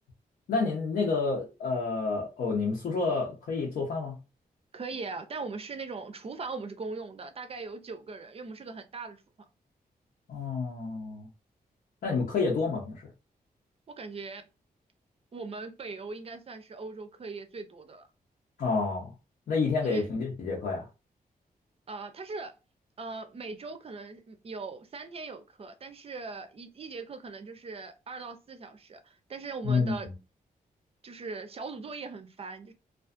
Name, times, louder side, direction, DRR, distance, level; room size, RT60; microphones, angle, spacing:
voice 1, 0.5-4.2 10.3-11.3 12.0-13.0 18.6-19.1 19.5-20.9 29.6-30.1, left 4 dB, 80° left, 0.7 m, -29 dB
voice 2, 4.7-9.2 14.0-14.5 15.3-18.1 19.8-20.1 21.9-22.5 23.0-30.1 31.0-32.7, right 4 dB, 40° right, 0.4 m, -40 dB
2.5 x 2.3 x 2.4 m
wide cardioid pair, 100°, 16 cm